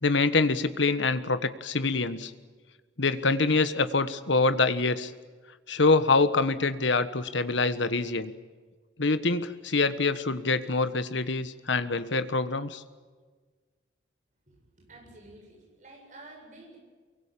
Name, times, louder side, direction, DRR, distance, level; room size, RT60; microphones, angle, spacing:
voice 1, 0.0-2.3 3.0-5.1 5.7-8.3 9.0-12.8, left 3 dB, 85° left, 12 dB, 1.4 m, -25 dB
voice 2, 14.5-16.8, right 2 dB, 40° right, 1 dB, 7.6 m, -50 dB
24.0 x 23.0 x 8.5 m, 1.4 s
head